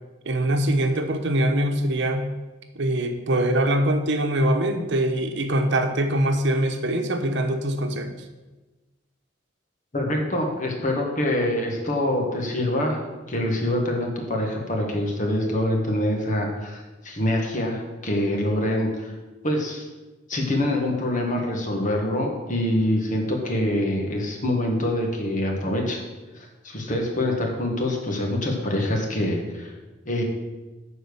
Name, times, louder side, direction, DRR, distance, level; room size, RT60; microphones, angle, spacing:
voice 1, 0.2-2.3 2.7-8.2, right 1 dB, 65° right, 6 dB, 0.9 m, -23 dB
voice 2, 9.9-13.0 13.3-19.1 19.4-19.9 20.3-26.0 26.3-29.7 30.0-30.2, left 1 dB, 45° left, 1 dB, 1.8 m, -25 dB
9.9 x 4.5 x 6.9 m, 1.2 s
head